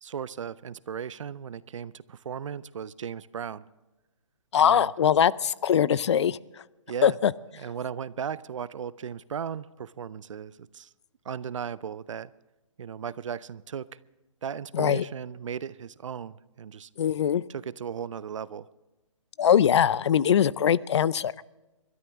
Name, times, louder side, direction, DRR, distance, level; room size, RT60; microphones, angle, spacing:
voice 1, 0.0-3.6 4.6-4.9 6.9-7.2 7.6-10.9 11.2-12.3 12.8-13.9 14.4-16.9 17.5-18.7, right 7 dB, 65° right, 19 dB, 0.6 m, -36 dB
voice 2, 4.5-6.4 7.0-7.3 14.7-15.0 17.0-17.4 19.4-21.3, left 9 dB, 55° left, 21 dB, 0.5 m, -22 dB
27.5 x 12.5 x 3.6 m, 1.1 s
hypercardioid pair, 150°, 17 cm